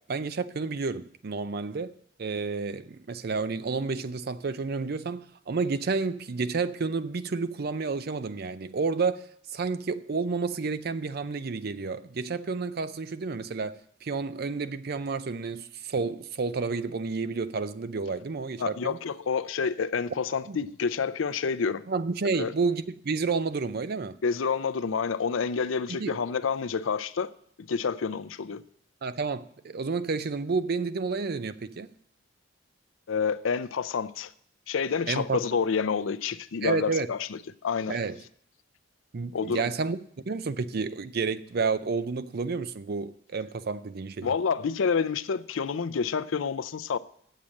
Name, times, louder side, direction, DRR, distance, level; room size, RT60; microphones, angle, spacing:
voice 1, 0.1-1.9 2.2-19.0 20.5-20.6 21.9-24.2 25.9-26.1 29.0-31.9 35.1-35.4 36.6-37.1 37.9-38.2 39.1-40.0 40.3-44.3, right 4 dB, 50° right, 0.5 m, -30 dB
voice 2, 18.6-21.8 22.3-22.5 24.2-27.3 27.7-28.6 33.1-34.3 34.7-38.0 39.3-39.7 44.2-47.0, left 5 dB, 85° left, 0.5 m, -28 dB
8.5 x 7.4 x 6.4 m
head